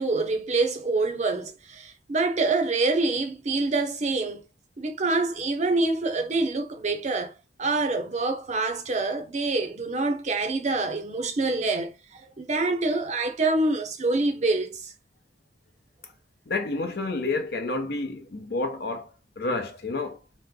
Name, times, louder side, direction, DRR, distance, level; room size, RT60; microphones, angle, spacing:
voice 1, 0.0-4.4 4.8-7.3 7.6-14.9, right 3 dB, 40° right, 0.6 m, -26 dB
voice 2, 16.5-19.1 19.4-20.2, left 3 dB, 65° left, 0.7 m, -29 dB
3.1 x 2.1 x 3.5 m
head